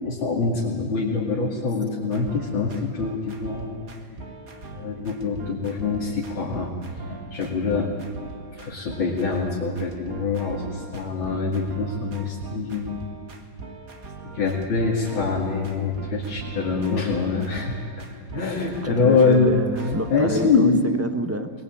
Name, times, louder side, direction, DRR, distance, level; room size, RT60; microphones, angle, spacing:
voice 1, 0.0-3.7 4.7-6.7 7.1-7.9 8.6-13.0 14.2-17.7 18.3-19.5 20.1-20.9, left 4 dB, 70° left, -3 dB, 3.3 m, -24 dB
sound 1, 2.0-20.5, right 3 dB, 45° right, 2.2 m, -41 dB
voice 2, 18.8-21.5, right 1 dB, 15° right, 8 dB, 0.5 m, -29 dB
22.0 x 21.0 x 8.9 m, 2.3 s
omnidirectional pair, 2.2 m